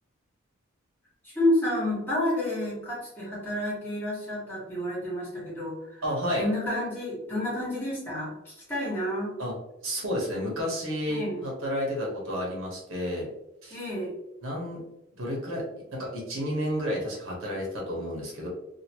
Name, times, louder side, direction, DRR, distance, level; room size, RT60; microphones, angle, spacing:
voice 1, 1.2-6.0 6.4-9.3 11.1-11.4 13.7-14.1, left 1 dB, 10° left, -7 dB, 1.4 m, -30 dB
voice 2, 6.0-6.5 9.4-9.5 9.8-13.3 13.6-13.8 14.4-14.8 15.2-15.6 15.9-18.5, equal, 70° right, -3 dB, 1.2 m, -31 dB
2.8 x 2.5 x 2.9 m, 0.87 s
head